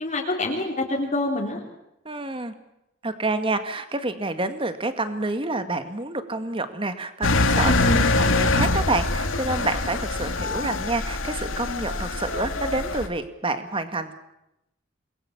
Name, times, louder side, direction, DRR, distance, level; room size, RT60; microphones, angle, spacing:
voice 1, 0.0-1.6 7.6-8.0, left 2 dB, 40° left, -1 dB, 3.6 m, -26 dB
voice 2, 2.1-2.5 3.0-7.7 8.2-14.1, right 2 dB, 25° right, 9 dB, 2.0 m, -28 dB
Engine, 7.2-13.1, left 2 dB, 85° left, 2.2 m, -24 dB
28.0 x 21.5 x 7.3 m, 0.86 s
head